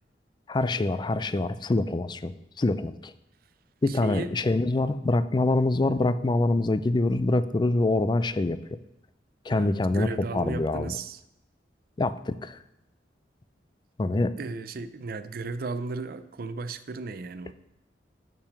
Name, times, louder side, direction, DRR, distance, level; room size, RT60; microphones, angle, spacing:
voice 1, 0.5-3.1 3.8-8.6 9.5-10.9 12.0-12.6 14.0-14.3, left 2 dB, 25° left, 14 dB, 0.4 m, -25 dB
voice 2, 3.9-4.3 9.5-11.2 14.4-17.5, right 3 dB, 55° right, 12 dB, 0.5 m, -35 dB
6.9 x 5.8 x 6.5 m, 0.89 s
head